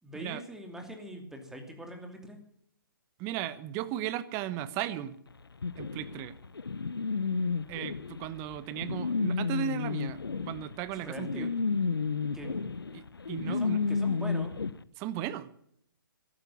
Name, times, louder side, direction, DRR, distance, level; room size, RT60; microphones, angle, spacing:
voice 1, 0.0-2.4 10.9-11.5 12.3-12.8 13.4-14.6, right 1 dB, 5° right, 4 dB, 2.7 m, -43 dB
voice 2, 3.2-5.2 5.8-6.4 7.7-11.5 12.9-13.8 15.0-15.5, right 11 dB, 25° right, 15 dB, 1.1 m, -36 dB
sound 1, 5.6-14.7, left 4 dB, 85° left, 0.9 m, -32 dB
15.0 x 13.0 x 7.1 m, 0.68 s
figure-of-eight pair, 140°, 12 cm